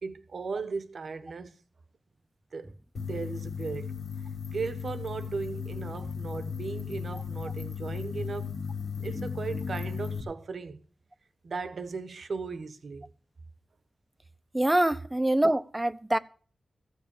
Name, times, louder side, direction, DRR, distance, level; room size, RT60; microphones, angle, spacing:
voice 1, 0.0-1.5 2.5-2.7 3.0-3.9 4.5-8.5 9.0-10.8 11.4-13.1, right 4 dB, 65° right, 1.1 m, -37 dB
sound 1, 3.0-10.2, left 6 dB, 75° left, 2.1 m, -36 dB
voice 2, 14.5-16.2, right 1 dB, 15° right, 0.7 m, -25 dB
15.0 x 5.7 x 8.8 m
wide cardioid pair, 80°, 0 cm